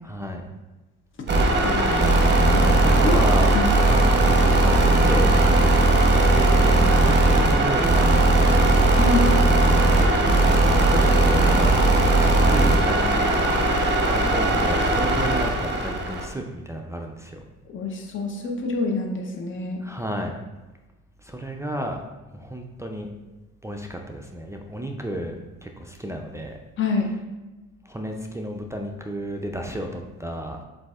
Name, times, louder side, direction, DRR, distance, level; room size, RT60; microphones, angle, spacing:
voice 1, 0.0-0.5 2.8-3.6 3.9-5.3 5.6-8.9 10.8-11.8 12.2-13.5 14.1-17.4 19.8-20.3 21.2-22.0 22.3-23.1 23.6-25.4 25.6-26.6 27.8-30.6, right 1 dB, 10° right, 1 dB, 0.4 m, -32 dB
sound 1, 1.3-16.3, right 2 dB, 35° right, 0.8 m, -18 dB
voice 2, 1.6-3.2 3.5-3.7 9.0-9.4 17.7-19.8 26.8-27.1, left 3 dB, 40° left, 2 dB, 0.9 m, -27 dB
7.3 x 2.7 x 2.4 m, 1.1 s
supercardioid pair, 70°, 31 cm